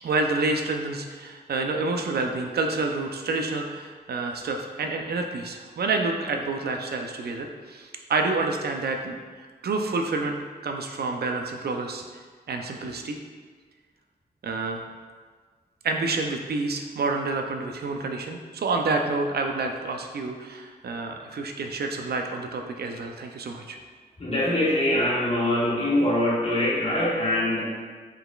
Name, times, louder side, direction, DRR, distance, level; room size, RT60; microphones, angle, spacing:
voice 1, 0.0-9.2 9.6-12.2 12.5-13.2 14.4-14.9 15.8-23.8, right 3 dB, 70° right, 3 dB, 0.4 m, -28 dB
voice 2, 24.2-27.6, left 1 dB, 40° left, -7 dB, 1.4 m, -23 dB
5.4 x 3.9 x 2.3 m, 1.5 s
wide cardioid pair, 120°, 17 cm